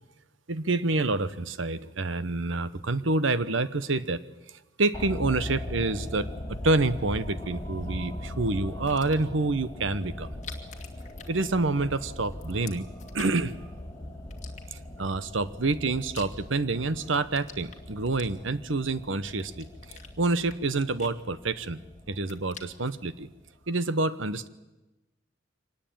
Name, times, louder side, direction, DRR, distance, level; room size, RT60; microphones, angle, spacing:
voice 1, 0.5-4.2 4.8-10.3 11.3-12.9 13.1-13.5 14.7-21.8 22.1-23.3 23.7-24.5, right 3 dB, 75° right, 15 dB, 1.0 m, -28 dB
sound 1, 4.9-23.1 23.4-23.5, left 1 dB, 10° left, 4.4 m, -40 dB
sound 2, 8.8-9.4 10.2-11.9 12.2-13.6 14.3-15.1 15.6-16.7 17.0-18.7 19.2-20.1 20.5-21.8 22.1-23.0, left 7 dB, 35° left, 2.3 m, -47 dB
24.5 x 19.5 x 8.8 m, 1.1 s
head